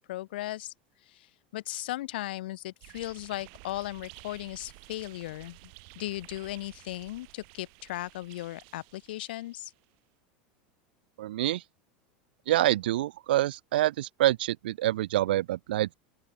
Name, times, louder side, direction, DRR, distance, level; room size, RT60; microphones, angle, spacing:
voice 1, 0.1-0.7 1.1-5.6 6.0-9.7, left 16 dB, 80° left, 7.4 m, -37 dB
sound 1, 2.8-9.9, right 40 dB or more, 65° right, 6.5 m, -53 dB
voice 2, 11.2-11.6 12.5-15.9, right 14 dB, 90° right, 0.6 m, -26 dB
open air
supercardioid pair, 120°, 5 cm